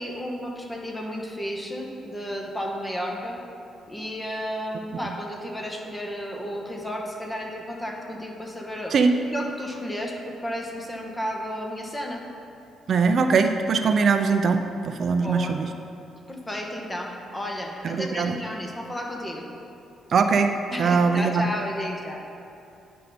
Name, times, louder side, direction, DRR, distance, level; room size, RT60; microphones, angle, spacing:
voice 1, 0.0-3.4 3.9-12.2 15.1-15.6 16.3-19.5 20.7-22.2, equal, 15° left, 1 dB, 1.2 m, -33 dB
voice 2, 12.9-15.7 17.8-18.4 20.1-20.5 20.8-21.4, right 5 dB, 55° right, 7 dB, 0.4 m, -21 dB
9.6 x 5.4 x 4.2 m, 2.7 s
cardioid pair, 90°, 0 cm